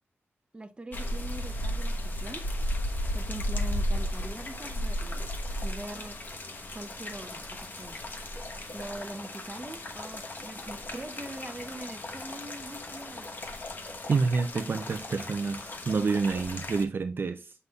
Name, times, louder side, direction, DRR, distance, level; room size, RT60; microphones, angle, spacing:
voice 1, 0.5-2.4 3.1-5.3 5.6-6.2 6.7-8.0 8.7-13.3, right 2 dB, 25° right, 0.8 m, -42 dB
sound 1, 0.9-16.8, left 1 dB, 45° left, 1.1 m, -35 dB
voice 2, 14.1-17.5, right 4 dB, 55° right, 0.5 m, -28 dB
8.2 x 5.4 x 2.4 m
wide cardioid pair, 145°, 5 cm